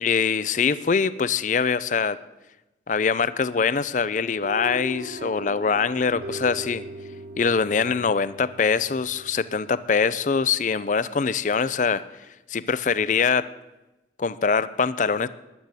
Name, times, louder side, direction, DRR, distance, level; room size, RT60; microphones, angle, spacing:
voice 1, 0.0-2.2 2.9-6.8 7.4-12.0 12.5-13.5 14.2-15.3, left 5 dB, 40° left, 16 dB, 0.4 m, -23 dB
sound 1, 4.3-10.6, right 1 dB, 60° right, 1.4 m, -39 dB
13.0 x 10.5 x 8.2 m, 1.0 s
head